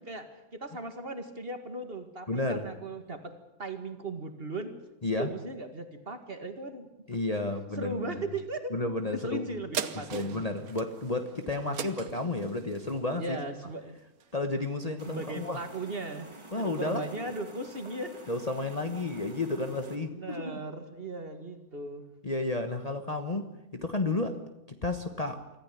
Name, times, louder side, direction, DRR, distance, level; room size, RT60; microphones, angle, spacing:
voice 1, 0.1-3.3 3.6-4.7 5.2-6.9 7.8-8.7 9.1-10.4 11.6-12.0 13.2-14.0 15.1-16.3 16.5-18.2 20.0-22.0, right 2 dB, 40° right, 8 dB, 2.2 m, -37 dB
voice 2, 2.3-2.6 5.0-5.3 7.1-8.2 8.7-9.5 9.9-13.4 14.3-15.6 16.5-17.1 18.3-20.6 22.2-24.4 24.7-25.4, left 2 dB, 25° left, 6 dB, 1.3 m, -32 dB
sound 1, 9.7-14.5 15.0-15.1, right 8 dB, 75° right, 1.5 m, -40 dB
sound 2, 15.0-20.0, right 2 dB, 20° right, 1.9 m, -49 dB
24.5 x 14.5 x 9.7 m, 0.91 s
omnidirectional pair, 1.6 m